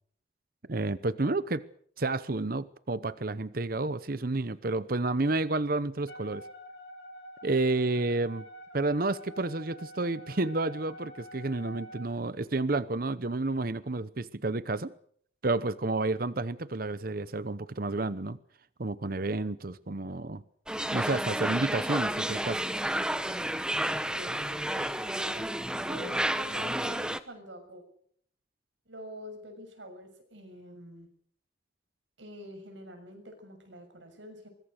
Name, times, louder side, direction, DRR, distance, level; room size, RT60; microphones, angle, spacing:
voice 1, 0.7-1.6 2.0-6.5 7.4-8.5 8.7-14.9 15.4-18.4 18.8-20.4 20.9-22.6, right 2 dB, 50° right, 0.9 m, -30 dB
Wind instrument woodwind instrument, 6.1-12.1, equal, 70° left, 6.6 m, -47 dB
sound 1, 20.7-27.2, right 1 dB, 5° right, 1.0 m, -31 dB
voice 2, 23.8-25.5 25.9-27.8 28.9-31.1 32.2-34.5, equal, 80° right, 6.6 m, -46 dB
24.0 x 21.5 x 6.6 m
head